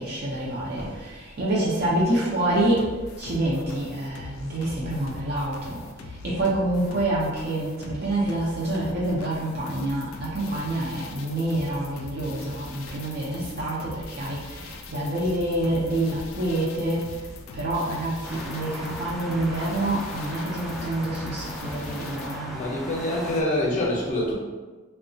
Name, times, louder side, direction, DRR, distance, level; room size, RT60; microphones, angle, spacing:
voice 1, 0.0-2.9 3.2-5.8 6.2-17.1 17.5-22.6, right 1 dB, 55° right, -7 dB, 0.5 m, -27 dB
sound 1, 2.5-22.4, left 3 dB, 85° left, 0.3 m, -42 dB
sound 2, 18.2-23.4, equal, ahead, 0.3 m, -37 dB
voice 2, 22.5-24.3, left 1 dB, 40° left, -3 dB, 0.6 m, -25 dB
2.8 x 2.1 x 2.6 m, 1.3 s
head